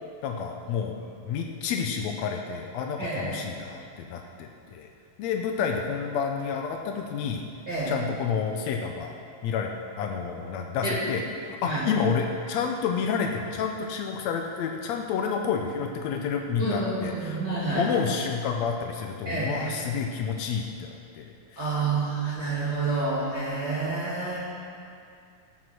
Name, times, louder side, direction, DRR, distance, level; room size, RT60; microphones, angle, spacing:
voice 1, 0.2-1.0 1.2-4.9 5.2-7.4 7.9-9.2 9.4-9.7 10.0-17.4 17.7-21.3 21.5-21.7, left 6 dB, 85° left, 2 dB, 1.5 m, -29 dB
voice 2, 7.7-8.0 10.8-10.9 11.6-12.0 16.6-17.8 19.2-19.7 21.6-24.4, right 3 dB, 35° right, -9 dB, 2.6 m, -29 dB
17.5 x 6.1 x 6.0 m, 2.4 s
omnidirectional pair, 4.0 m